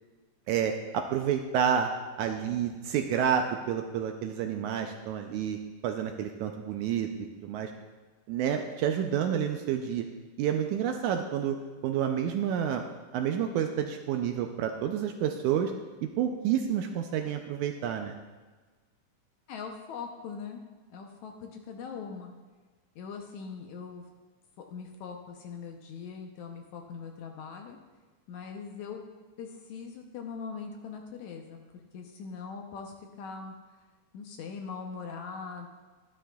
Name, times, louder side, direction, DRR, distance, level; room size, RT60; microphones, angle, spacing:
voice 1, 0.5-1.9 2.2-5.6 5.8-7.1 7.4-7.7 8.3-10.1 10.4-11.6 11.8-12.8 13.1-15.7 16.2-18.2, right 9 dB, 80° right, 4 dB, 1.8 m, -29 dB
voice 2, 19.5-22.3 23.0-24.1 24.6-27.8 28.3-29.1 29.4-33.5 34.1-35.7, left 5 dB, 75° left, 3 dB, 1.9 m, -41 dB
12.5 x 11.0 x 2.3 m, 1.3 s
omnidirectional pair, 3.8 m